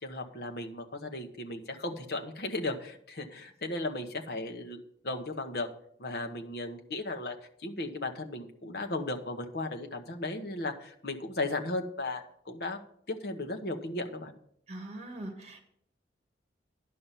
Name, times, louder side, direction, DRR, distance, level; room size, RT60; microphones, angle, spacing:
voice 1, 0.0-4.8 5.0-5.7 6.0-7.4 7.6-12.8 13.1-14.3, left 2 dB, 60° left, 4 dB, 1.1 m, -36 dB
voice 2, 14.7-15.7, right 1 dB, 35° right, 4 dB, 1.8 m, -42 dB
10.5 x 5.5 x 7.4 m, 0.67 s
head